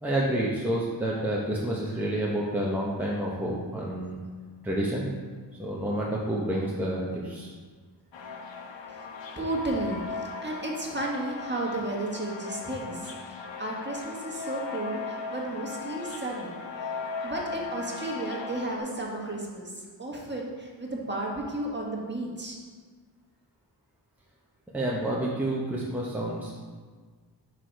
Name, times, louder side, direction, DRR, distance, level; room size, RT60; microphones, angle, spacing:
voice 1, 0.0-4.2 4.6-5.1 5.6-7.5 24.7-26.5, right 1 dB, 5° right, -5 dB, 1.0 m, -29 dB
sound 1, 8.1-18.8, left 5 dB, 75° left, 0.7 m, -37 dB
voice 2, 9.3-16.9 17.2-22.6, right 2 dB, 25° right, -2 dB, 1.6 m, -33 dB
6.0 x 4.9 x 4.7 m, 1.5 s
cardioid pair, 55°, 45 cm